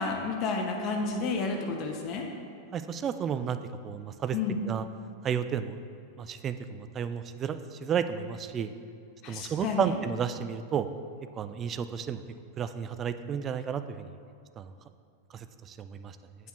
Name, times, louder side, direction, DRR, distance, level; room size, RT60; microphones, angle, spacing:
voice 1, 0.0-2.2 4.3-4.6 9.2-9.9, left 4 dB, 35° left, 2 dB, 0.8 m, -31 dB
voice 2, 2.7-3.6 3.8-4.4 4.6-4.8 5.2-5.8 6.2-8.7 9.3-10.9 11.4-12.2 12.6-14.1 14.6-14.7 15.3-16.2, right 7 dB, 25° right, 10 dB, 0.3 m, -32 dB
7.9 x 6.2 x 3.0 m, 2.3 s
figure-of-eight pair, 90°, 0 cm